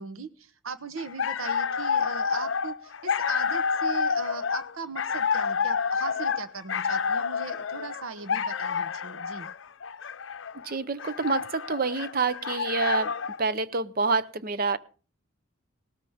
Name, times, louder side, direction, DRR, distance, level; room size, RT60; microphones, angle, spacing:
voice 1, 0.0-9.5, right 5 dB, 85° right, 12 dB, 1.0 m, -39 dB
sound 1, 1.0-13.4, left 6 dB, 65° left, 0.6 m, -29 dB
voice 2, 10.6-13.1 13.4-14.8, right 4 dB, 45° right, 15 dB, 0.7 m, -27 dB
18.5 x 13.5 x 3.5 m, 0.38 s
head